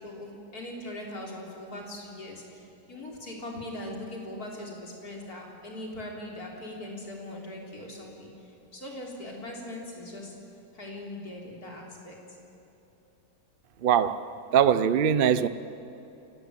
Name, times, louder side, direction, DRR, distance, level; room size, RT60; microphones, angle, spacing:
voice 1, 0.0-10.3 10.7-12.2, left 1 dB, 55° left, 4.4 m, -40 dB
voice 2, 13.8-15.5, right 8 dB, 60° right, 0.5 m, -22 dB
29.0 x 16.5 x 9.0 m
omnidirectional pair, 1.9 m